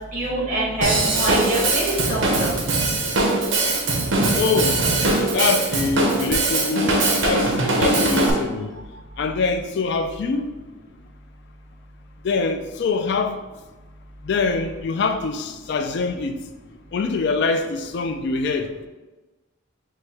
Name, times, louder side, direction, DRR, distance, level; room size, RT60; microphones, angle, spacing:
voice 1, 0.1-2.5, right 1 dB, 40° right, 1.4 m, -24 dB
Drum kit / Drum, 0.8-8.3, right 2 dB, 65° right, 0.7 m, -21 dB
voice 2, 4.3-4.8 5.3-8.7 9.2-10.5 12.2-13.4 14.2-16.4 16.9-18.7, left 4 dB, 55° left, 0.3 m, -24 dB
5.9 x 2.2 x 3.3 m
head